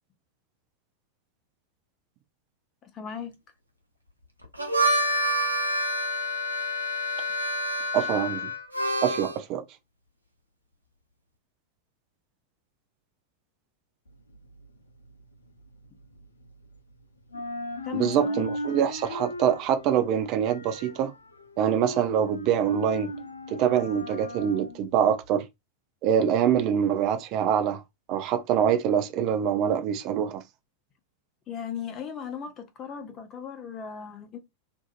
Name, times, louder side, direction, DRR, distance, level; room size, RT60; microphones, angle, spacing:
voice 1, 2.8-3.3 17.8-18.5 31.5-34.4, left 7 dB, 30° left, 0.7 m, -37 dB
Harmonica, 4.4-9.4, equal, 85° right, 0.6 m, -27 dB
voice 2, 7.9-8.5 9.0-9.6 17.9-21.1 21.6-23.1 23.5-25.5 26.0-27.8 28.1-30.4, right 9 dB, 40° right, 0.5 m, -25 dB
sound 1, 14.1-16.9 17.2-25.4, left 1 dB, 75° left, 0.5 m, -38 dB
2.6 x 2.6 x 2.4 m
figure-of-eight pair, 90°, 0 cm